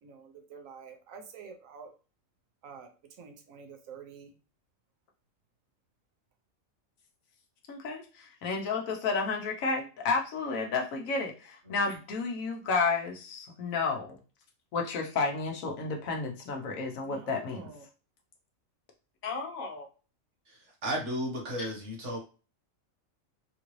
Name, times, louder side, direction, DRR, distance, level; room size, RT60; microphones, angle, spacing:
voice 1, 0.0-1.9 2.6-2.9 3.2-4.3 17.0-17.8, right 5 dB, 85° right, 5 dB, 1.1 m, -48 dB
voice 2, 7.7-14.2 14.7-17.7 19.2-19.9, left 4 dB, 85° left, 1 dB, 1.2 m, -31 dB
voice 3, 20.5-22.2, equal, 60° right, -1 dB, 1.5 m, -34 dB
3.8 x 2.5 x 3.1 m, 0.34 s
omnidirectional pair, 1.4 m